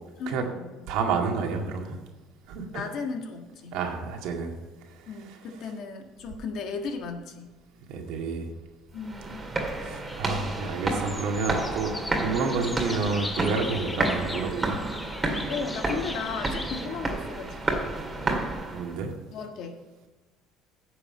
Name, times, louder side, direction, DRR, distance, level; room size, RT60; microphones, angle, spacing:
voice 1, 0.2-0.9 2.7-3.8 5.1-7.5 8.9-9.5 15.5-17.8 19.3-19.8, left 5 dB, 60° left, 4 dB, 1.7 m, -35 dB
voice 2, 0.9-2.0 2.5-2.8 3.7-4.6 4.9-5.4 7.9-8.5 9.8-14.8 18.2-18.4 18.7-19.1, right 4 dB, 75° right, 2 dB, 2.1 m, -30 dB
sound 1, 9.0-19.0, right 2 dB, 20° right, 2.0 m, -31 dB
sound 2, 10.1-16.9, left 2 dB, 15° left, 0.8 m, -39 dB
9.9 x 6.8 x 6.7 m, 1.3 s
cardioid pair, 115°, 0 cm